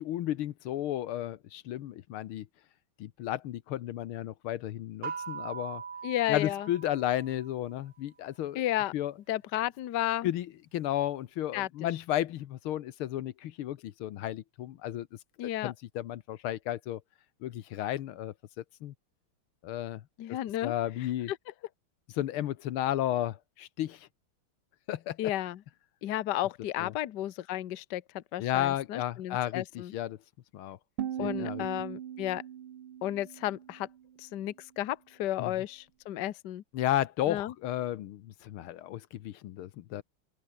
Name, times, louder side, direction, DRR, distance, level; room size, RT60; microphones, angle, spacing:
voice 1, 0.0-2.5 3.0-5.8 6.3-8.6 8.9-9.1 10.2-15.1 15.6-17.0 17.4-18.3 18.8-18.9 19.6-20.0 20.6-21.3 22.2-24.1 24.9-25.2 26.8-26.9 28.4-30.2 30.5-30.8 31.2-31.7 35.4-35.5 36.7-40.0, left 12 dB, 80° left, 1.8 m, -33 dB
sound 1, 5.0-7.7, right 6 dB, 60° right, 2.7 m, -41 dB
voice 2, 6.0-6.7 8.5-8.9 9.3-10.3 11.5-11.9 15.4-15.7 20.2-20.7 21.3-21.4 25.2-25.6 26.0-29.9 31.2-32.4 33.0-33.9 34.2-36.6 37.3-37.5, left 14 dB, 60° left, 1.4 m, -33 dB
sound 2, 31.0-34.0, right 10 dB, 80° right, 2.1 m, -39 dB
open air
omnidirectional pair, 2.3 m